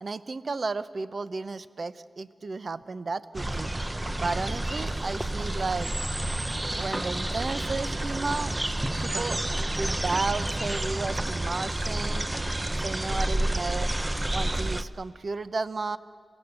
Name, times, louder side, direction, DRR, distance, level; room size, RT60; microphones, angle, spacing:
voice 1, 0.0-3.7 4.2-5.9 6.7-8.5 9.0-9.4 9.8-12.3 12.8-13.9 14.3-16.0, right 3 dB, 55° right, 14 dB, 0.8 m, -33 dB
sound 1, 3.3-14.8, right 1 dB, 20° right, 0.7 m, -29 dB
sound 2, 3.8-13.0, right 5 dB, 90° right, 1.0 m, -49 dB
27.5 x 16.5 x 8.1 m, 2.3 s
cardioid pair, 65°, 0 cm